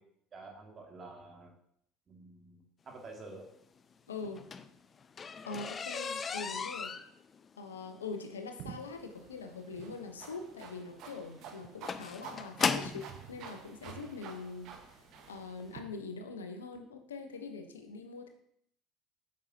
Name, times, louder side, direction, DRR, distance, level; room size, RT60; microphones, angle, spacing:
voice 1, 0.3-1.5 2.1-3.5, right 3 dB, 35° right, 1 dB, 2.0 m, -49 dB
voice 2, 4.1-4.4 5.5-6.9 7.6-14.7 15.3-18.3, left 4 dB, 80° left, 6 dB, 0.7 m, -43 dB
sound 1, 4.2-13.1 14.0-14.1 14.7-14.9 15.2-15.3 15.6-15.7, left 5 dB, 30° left, 0.5 m, -37 dB
sound 2, 8.6-15.8, right 7 dB, 55° right, 1.0 m, -49 dB
8.6 x 6.3 x 2.8 m, 0.69 s
figure-of-eight pair, 65°, 0 cm